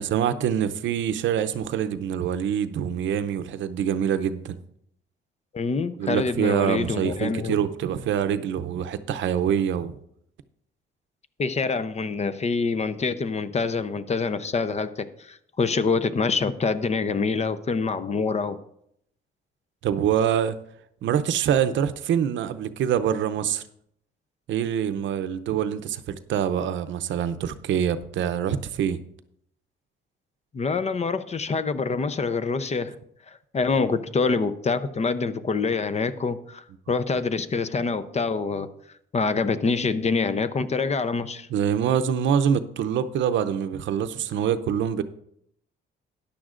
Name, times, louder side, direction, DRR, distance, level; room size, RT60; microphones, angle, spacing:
voice 1, 0.0-4.6 6.0-10.0 19.8-20.6 21.0-23.6 24.5-29.0 33.7-33.9 41.5-45.0, right 9 dB, 70° right, 12 dB, 0.6 m, -25 dB
voice 2, 5.5-7.6 11.4-18.6 30.5-32.9 33.3-38.7 39.1-41.5, left 4 dB, 35° left, 12 dB, 0.7 m, -26 dB
13.5 x 10.0 x 2.5 m, 0.73 s
cardioid pair, 90°, 20 cm